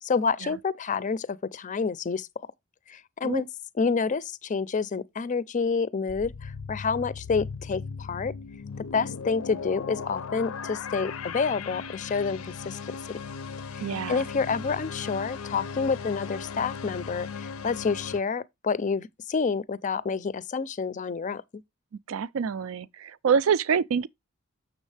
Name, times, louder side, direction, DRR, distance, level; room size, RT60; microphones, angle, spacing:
voice 1, 0.0-2.3 2.9-3.5 3.8-8.3 8.8-13.2 13.7-21.4, left 5 dB, 35° left, 0.4 m, -28 dB
sound 1, 6.1-18.2, left 5 dB, 85° left, 0.5 m, -37 dB
voice 2, 13.8-14.3 22.1-24.1, right 6 dB, 70° right, 0.4 m, -26 dB
7.1 x 6.3 x 3.2 m
head